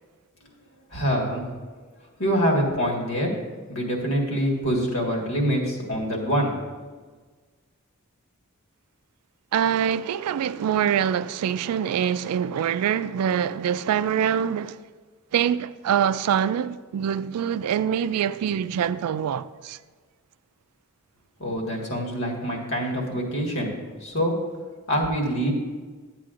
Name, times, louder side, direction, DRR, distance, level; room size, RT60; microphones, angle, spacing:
voice 1, 0.9-1.5 2.2-3.3 3.7-6.5 21.4-23.7 24.0-24.4 24.9-25.5, equal, 65° left, 1.7 m, -25 dB
voice 2, 9.5-14.8 15.3-19.8, right 8 dB, 85° right, 0.3 m, -24 dB
12.0 x 8.4 x 2.5 m
head